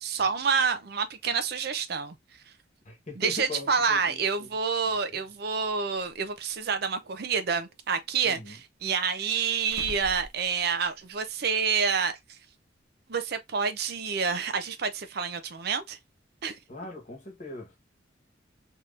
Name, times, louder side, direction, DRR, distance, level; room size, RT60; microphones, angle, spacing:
voice 1, 0.0-2.2 3.2-12.4 13.1-16.0 16.4-16.6, right 5 dB, 55° right, 0.5 m, -28 dB
voice 2, 2.8-4.6 5.1-5.2 8.2-8.6 16.7-17.8, left 2 dB, 40° left, 1.1 m, -41 dB
sound 1, 6.0-6.1 7.0-7.9 8.8-11.1 11.4-11.5 13.1-13.2, equal, 85° right, 1.1 m, -46 dB
3.4 x 2.9 x 2.5 m
head